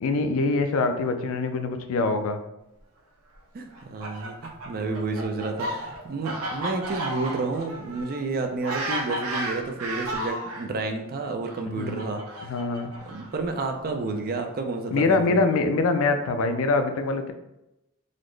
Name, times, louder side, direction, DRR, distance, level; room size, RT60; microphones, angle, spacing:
voice 1, 0.0-2.4 11.7-12.0 12.4-12.9 14.9-17.3, left 3 dB, 70° left, 7 dB, 0.4 m, -24 dB
voice 2, 3.5-12.6 13.1-15.4, right 3 dB, 45° right, 4 dB, 0.4 m, -30 dB
Fowl, 3.7-10.6 11.4-13.5, right 1 dB, 85° right, 0.6 m, -33 dB
3.9 x 2.0 x 3.2 m, 0.91 s
head